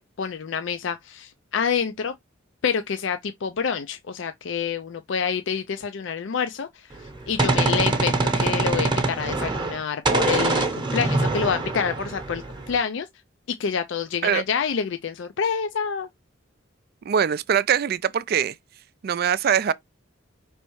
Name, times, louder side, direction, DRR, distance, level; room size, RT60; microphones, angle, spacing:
voice 1, 0.0-2.1 2.6-6.9 7.3-13.1 13.5-16.1, left 6 dB, 60° left, 0.4 m, -27 dB
Gunshot gunfire, 6.9-9.8 10.1-12.8, right 3 dB, 20° right, 0.8 m, -24 dB
voice 2, 17.1-18.6 19.0-19.7, right 8 dB, 50° right, 0.3 m, -22 dB
5.2 x 3.3 x 3.0 m
head